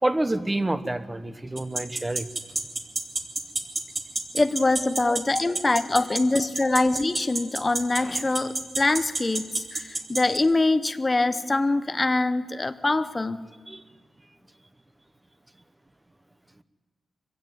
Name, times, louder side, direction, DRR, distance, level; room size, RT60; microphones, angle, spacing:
voice 1, 0.0-2.3 5.0-5.1 5.5-5.6 6.7-7.0 13.7-13.8, right 1 dB, 15° right, 11 dB, 1.0 m, -28 dB
sound 1, 1.6-10.4, right 2 dB, 40° right, 2.5 m, -27 dB
voice 2, 4.3-13.4, left 2 dB, 25° left, 12 dB, 0.8 m, -24 dB
24.0 x 16.0 x 9.2 m, 1.5 s
cardioid pair, 100°, 0 cm